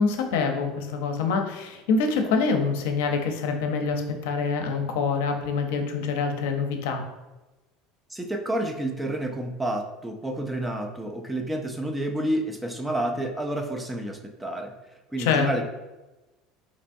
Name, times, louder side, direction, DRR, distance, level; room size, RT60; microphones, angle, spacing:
voice 1, 0.0-7.0 15.2-15.5, left 5 dB, 80° left, 5 dB, 0.5 m, -25 dB
voice 2, 8.1-14.7 15.1-15.6, right 1 dB, 5° right, 4 dB, 0.3 m, -29 dB
4.3 x 2.9 x 2.6 m, 1.1 s
cardioid pair, 145°, 0 cm